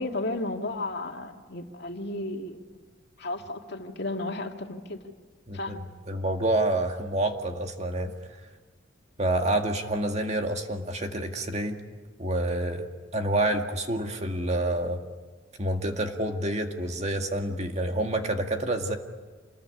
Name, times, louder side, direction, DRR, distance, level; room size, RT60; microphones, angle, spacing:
voice 1, 0.0-2.6 3.2-5.0 5.5-5.8, left 2 dB, 55° left, 3 dB, 2.2 m, -33 dB
voice 2, 6.1-8.1 9.2-11.8 12.2-12.9 13.1-15.0 15.6-19.0, right 1 dB, 35° right, 4 dB, 2.0 m, -28 dB
28.0 x 21.5 x 9.9 m, 1.4 s
head